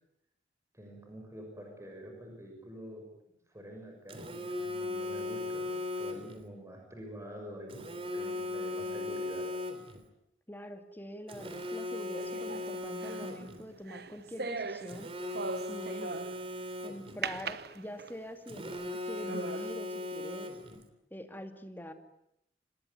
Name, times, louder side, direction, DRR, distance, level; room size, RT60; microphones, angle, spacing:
voice 1, 0.7-3.0 3.5-9.5, equal, 15° right, 2 dB, 6.5 m, -46 dB
Telephone, 4.1-6.4 7.7-10.1 11.3-13.6 14.9-17.3 18.5-20.8, left 2 dB, 35° right, 3.1 m, -38 dB
voice 2, 10.5-15.1 15.7-16.3 16.8-20.6 21.1-21.9, equal, 10° left, 7 dB, 2.4 m, -44 dB
sound 1, 12.2-16.6 17.2-18.3 18.8-18.9 19.3-19.7, right 4 dB, 60° right, 1.1 m, -40 dB
27.5 x 20.5 x 9.7 m, 0.79 s
head